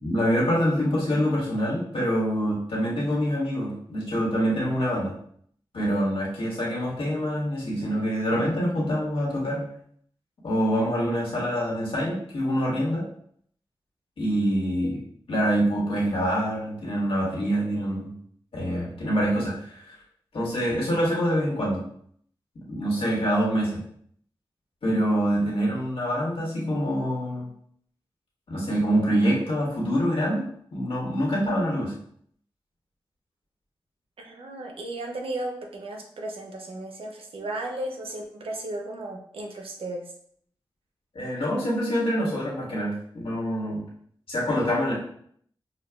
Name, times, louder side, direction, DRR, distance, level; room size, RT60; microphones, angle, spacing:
voice 1, 0.0-5.1 5.7-9.7 10.4-13.0 14.2-15.0 15.3-18.1 18.5-19.9 20.3-21.8 22.7-23.8 24.8-27.5 28.5-31.9 41.1-43.8 44.3-44.9, equal, 80° left, -4 dB, 1.5 m, -25 dB
voice 2, 34.2-40.0, right 1 dB, 90° right, 2 dB, 0.7 m, -35 dB
6.3 x 2.3 x 2.3 m, 0.63 s
wide cardioid pair, 75°, 9 cm